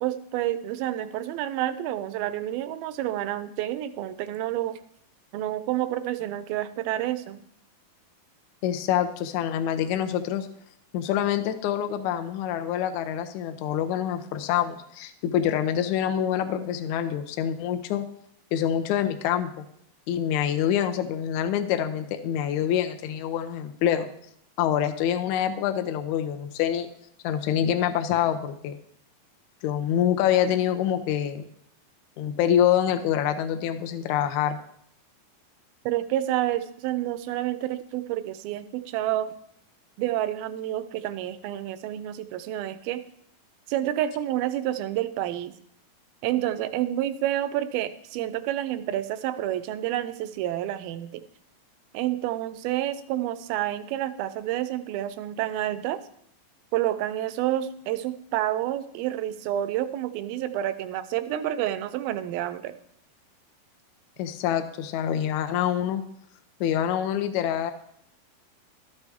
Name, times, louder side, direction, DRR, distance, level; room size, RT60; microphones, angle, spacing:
voice 1, 0.0-4.8 5.3-7.4 35.9-39.3 40.0-43.0 43.7-45.5 46.2-51.2 51.9-56.0 56.7-62.7, right 13 dB, 80° right, 13 dB, 2.4 m, -29 dB
voice 2, 8.6-10.5 10.9-18.1 18.5-19.6 20.1-24.1 24.6-26.9 27.2-28.8 29.6-31.5 32.2-34.6 64.2-66.0 66.6-67.7, left 10 dB, 80° left, 7 dB, 1.7 m, -26 dB
12.5 x 8.3 x 3.5 m, 0.70 s
omnidirectional pair, 4.3 m